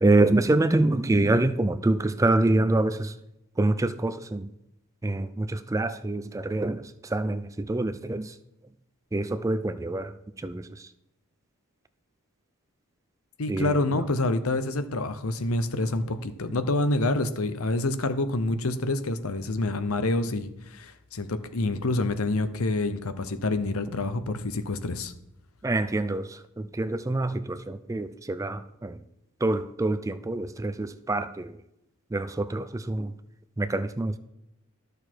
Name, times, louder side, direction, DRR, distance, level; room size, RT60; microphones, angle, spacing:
voice 1, 0.0-3.1 3.6-4.5 5.0-8.3 9.1-10.1 10.4-10.7 13.5-13.8 25.6-29.0 29.4-31.5 32.1-33.1 33.6-34.2, right 2 dB, 15° right, 0.4 m, -26 dB
voice 2, 13.4-25.1, left 2 dB, 75° left, 0.8 m, -27 dB
12.5 x 6.6 x 4.5 m
head